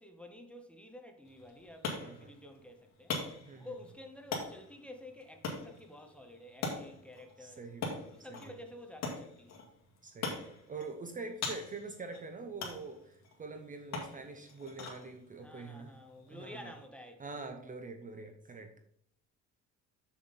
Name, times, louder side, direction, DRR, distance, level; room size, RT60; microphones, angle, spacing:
voice 1, 0.0-3.2 3.6-7.6 8.1-9.6 15.4-17.3, left 1 dB, 5° left, 0.9 m, -51 dB
sound 1, 1.2-16.9, left 4 dB, 65° left, 2.0 m, -43 dB
voice 2, 2.0-2.3 3.4-3.7 7.4-8.0 8.3-8.5 10.0-16.0 16.3-16.8 17.2-18.8, right 3 dB, 25° right, 0.7 m, -45 dB
7.1 x 6.9 x 4.1 m
cardioid pair, 150°, 30 cm